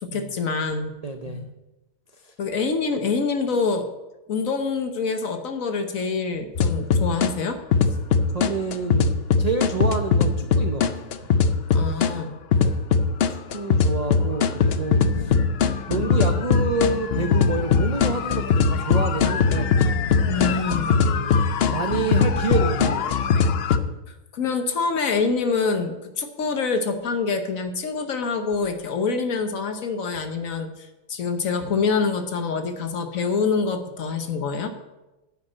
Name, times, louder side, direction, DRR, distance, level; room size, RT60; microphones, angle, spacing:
voice 1, 0.0-0.9 1.3-1.5 2.4-3.9 4.3-7.6 11.7-12.4 20.2-20.9 24.1-34.7, left 4 dB, 55° left, 7 dB, 1.3 m, -26 dB
voice 2, 1.0-1.5 2.2-2.3 8.3-9.1 9.4-11.1 12.6-12.8 13.3-15.4 15.9-19.8 20.8-21.4 21.7-23.4, right 3 dB, 65° right, 5 dB, 0.4 m, -28 dB
sound 1, 6.6-7.3 7.7-12.1 12.5-23.8, left 5 dB, 80° left, 0.5 m, -20 dB
10.5 x 5.8 x 8.6 m, 1.0 s
omnidirectional pair, 1.8 m